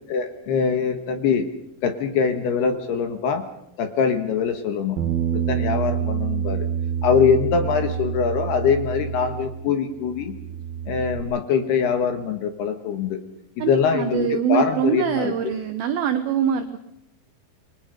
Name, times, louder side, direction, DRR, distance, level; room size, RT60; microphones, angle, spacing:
voice 1, 0.1-1.5 1.8-3.4 3.8-5.0 5.3-6.7 7.0-10.3 10.9-13.2 13.6-15.3, left 6 dB, 65° left, 7 dB, 2.9 m, -23 dB
Bass guitar, 5.0-9.7 10.0-11.2, right 8 dB, 50° right, 3.7 m, -27 dB
voice 2, 13.6-16.8, right 8 dB, 85° right, 8 dB, 2.1 m, -24 dB
28.5 x 22.5 x 5.3 m, 0.80 s
omnidirectional pair, 6.0 m